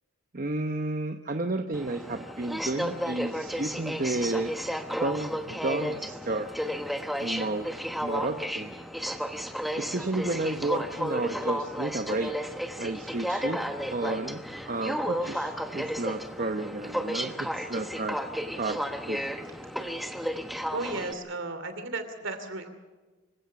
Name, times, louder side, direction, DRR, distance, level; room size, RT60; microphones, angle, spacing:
voice 1, 0.3-4.5 4.9-6.5 7.2-7.7 8.0-8.7 9.8-12.3 12.8-13.6 13.9-18.2 18.6-18.8 19.1-19.3, right 2 dB, 35° right, 6 dB, 0.9 m, -32 dB
Aircraft, 1.7-21.1, equal, ahead, 1.0 m, -33 dB
voice 2, 20.7-22.7, right 2 dB, 55° right, 9 dB, 2.8 m, -34 dB
26.0 x 16.0 x 6.9 m, 1.3 s
head